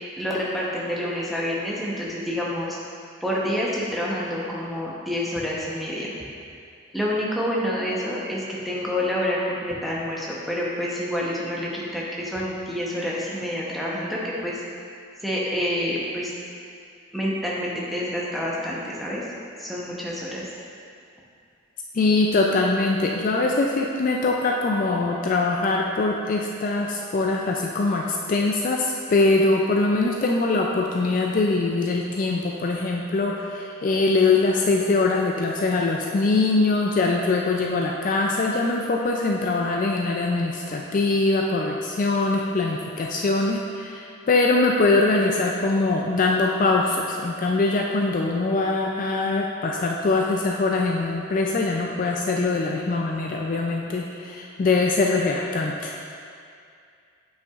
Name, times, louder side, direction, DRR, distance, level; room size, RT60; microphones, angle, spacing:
voice 1, 0.2-2.8 3.2-6.1 6.9-14.6 15.2-16.3 17.1-19.3 19.6-20.4, equal, ahead, -6 dB, 0.8 m, -28 dB
voice 2, 21.9-56.0, left 3 dB, 40° left, 0 dB, 0.3 m, -22 dB
7.7 x 5.6 x 2.4 m, 2.4 s
head